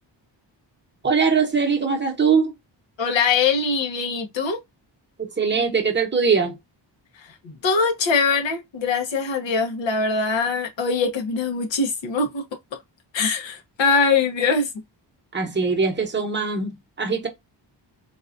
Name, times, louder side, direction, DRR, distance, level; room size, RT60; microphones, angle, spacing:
voice 1, 1.0-2.5 5.2-6.5 15.3-17.3, right 5 dB, 25° right, 0.8 m, -21 dB
voice 2, 3.0-4.6 7.6-12.4 13.1-14.7, left 4 dB, 85° left, 1.0 m, -22 dB
4.0 x 2.3 x 2.4 m
wide cardioid pair, 130°, 44 cm